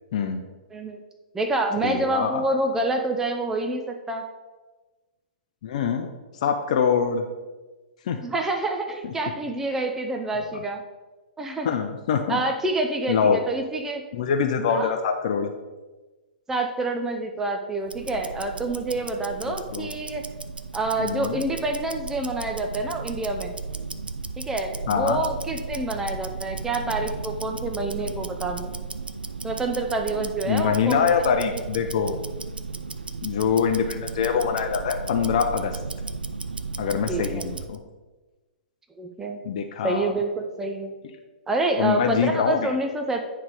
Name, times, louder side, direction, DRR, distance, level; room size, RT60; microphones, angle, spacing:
voice 1, 0.7-1.0 1.3-4.2 8.2-10.8 11.4-11.7 12.3-14.0 14.7-14.9 16.5-20.2 20.7-23.6 24.4-28.7 29.4-31.6 37.1-37.5 39.0-39.4 39.8-40.9 41.5-43.2, right 2 dB, 10° right, 4 dB, 0.5 m, -27 dB
voice 2, 1.8-2.4 5.6-6.1 6.4-7.2 8.1-8.2 11.6-12.4 13.1-13.4 14.1-15.5 19.5-19.9 21.0-21.4 24.9-25.2 30.5-32.2 33.2-35.8 36.8-37.8 39.4-40.1 41.8-42.7, left 7 dB, 45° left, 6 dB, 0.6 m, -24 dB
Tick-tock, 17.8-37.8, right 4 dB, 75° right, 0.4 m, -35 dB
9.4 x 3.4 x 4.9 m, 1.2 s
figure-of-eight pair, 115°, 5 cm